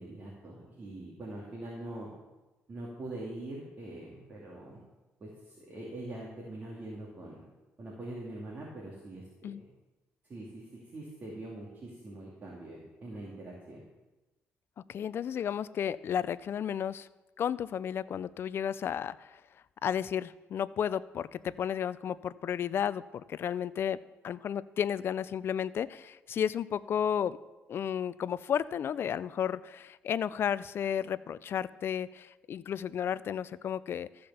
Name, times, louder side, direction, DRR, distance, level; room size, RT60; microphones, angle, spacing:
voice 1, 0.0-2.1 2.7-4.8 5.2-7.4 7.8-9.5 10.3-10.6 10.9-13.8, right 1 dB, 35° right, -4 dB, 2.6 m, -43 dB
voice 2, 14.9-17.1 17.4-19.4 19.8-24.0 24.2-27.4 27.7-34.1, left 9 dB, 55° left, 17 dB, 0.4 m, -33 dB
14.0 x 5.1 x 7.0 m, 1.1 s
cardioid pair, 100°, 5 cm